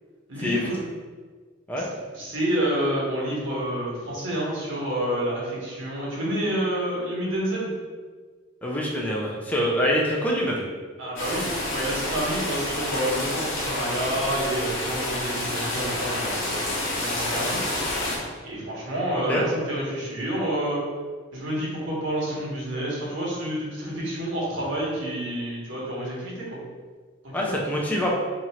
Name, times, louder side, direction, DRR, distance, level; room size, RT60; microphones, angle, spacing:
voice 1, 0.3-0.8 1.8-1.9 2.1-7.7 11.0-17.6 18.4-20.8 21.3-26.6 27.2-27.5, right 1 dB, 80° right, -5 dB, 1.2 m, -29 dB
voice 2, 8.6-10.6 19.3-19.4 27.3-28.1, equal, 10° left, -3 dB, 0.4 m, -25 dB
sound 1, 11.2-18.2, left 1 dB, 90° left, 0.9 m, -29 dB
2.9 x 2.5 x 4.2 m, 1.5 s
head